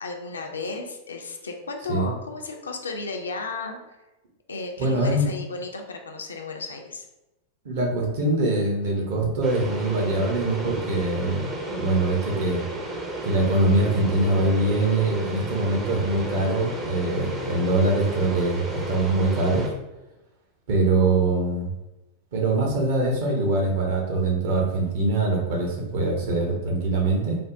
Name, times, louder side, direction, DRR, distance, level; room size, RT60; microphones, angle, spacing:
voice 1, 0.0-3.8 4.5-7.0, left 3 dB, 70° left, 3 dB, 0.4 m, -34 dB
voice 2, 4.8-5.2 7.6-12.6 13.2-19.7 20.7-21.7 22.3-27.4, right 2 dB, 55° right, 0 dB, 0.7 m, -23 dB
sound 1, 9.4-19.7, right 2 dB, 20° right, 0.5 m, -33 dB
3.3 x 2.0 x 2.5 m, 0.98 s
figure-of-eight pair, 90°, 0 cm